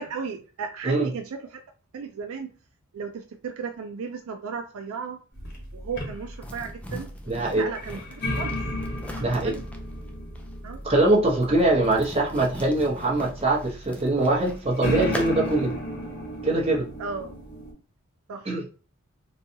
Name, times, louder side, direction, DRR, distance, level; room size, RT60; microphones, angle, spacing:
voice 1, 0.0-1.6 1.9-2.5 2.9-5.2 5.7-7.1 7.5-8.0 8.3-8.6 9.2-9.6 10.6-10.8 17.0-17.3 18.3-18.5, right 5 dB, 65° right, 6 dB, 0.4 m, -34 dB
sound 1, 5.3-17.7, equal, 50° left, 1.2 m, -35 dB
sound 2, 6.4-15.7, left 1 dB, 5° left, 0.3 m, -41 dB
voice 2, 7.3-7.6 9.2-9.5 10.8-15.8 16.4-16.9 18.4-18.6, right 2 dB, 25° right, -2 dB, 0.9 m, -23 dB
4.0 x 2.2 x 2.8 m, 0.36 s
head